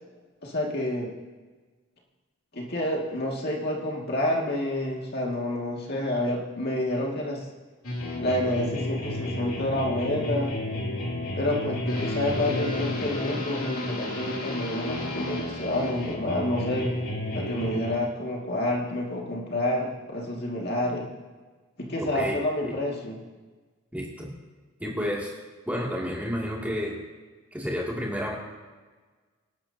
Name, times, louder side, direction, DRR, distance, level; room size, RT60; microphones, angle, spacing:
voice 1, 0.4-1.1 2.5-7.4 8.2-10.5 11.3-16.9 17.3-21.0 21.8-23.2, left 1 dB, 50° left, -2 dB, 2.3 m, -28 dB
sound 1, 7.8-18.0, left 1 dB, 85° left, 2.8 m, -31 dB
voice 2, 22.0-22.7 23.9-24.3 24.8-25.3 25.7-27.0 27.5-28.3, equal, 5° right, -4 dB, 2.6 m, -31 dB
25.5 x 12.0 x 2.9 m, 1.3 s
head